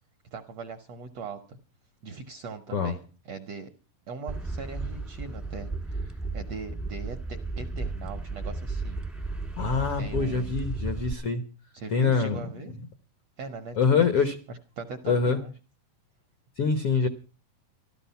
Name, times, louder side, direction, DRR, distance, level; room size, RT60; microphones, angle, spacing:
voice 1, 0.3-1.6 2.0-3.7 4.1-9.0 10.0-10.6 10.9-11.0 11.7-12.7 13.4-14.1 14.5-15.5, right 4 dB, 70° right, 6 dB, 1.5 m, -40 dB
sound 1, 4.3-11.1, right 3 dB, ahead, 0.5 m, -34 dB
voice 2, 9.6-11.4 11.9-12.4 13.8-14.4 15.0-15.4 16.6-17.1, left 5 dB, 75° left, 10 dB, 1.3 m, -24 dB
14.0 x 13.5 x 5.7 m, 0.35 s
omnidirectional pair, 4.3 m